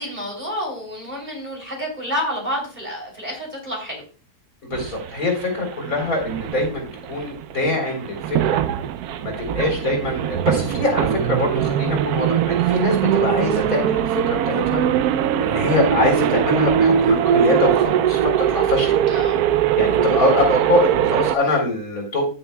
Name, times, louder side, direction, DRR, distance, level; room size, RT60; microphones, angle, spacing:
voice 1, 0.0-4.0 19.1-19.4, equal, 30° right, -1 dB, 3.4 m, -29 dB
voice 2, 4.7-8.6 9.2-14.8 15.4-19.0 19.7-22.2, left 2 dB, 60° left, 1 dB, 4.2 m, -23 dB
sound 1, 4.7-21.4, right 10 dB, 80° right, 1.1 m, -21 dB
15.0 x 7.0 x 2.3 m, 0.35 s
omnidirectional pair, 1.6 m